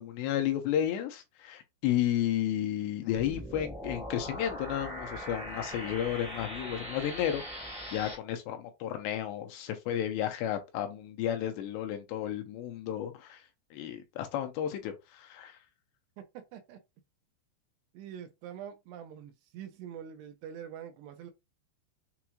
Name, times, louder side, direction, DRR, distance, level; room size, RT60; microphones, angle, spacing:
voice 1, 0.0-7.6 7.9-13.4 13.7-15.6, left 11 dB, 85° left, 2.8 m, -32 dB
sound 1, 3.1-8.1, equal, 10° right, 0.3 m, -41 dB
voice 2, 17.9-21.3, right 9 dB, 80° right, 2.6 m, -44 dB
7.0 x 2.4 x 3.0 m
omnidirectional pair, 5.1 m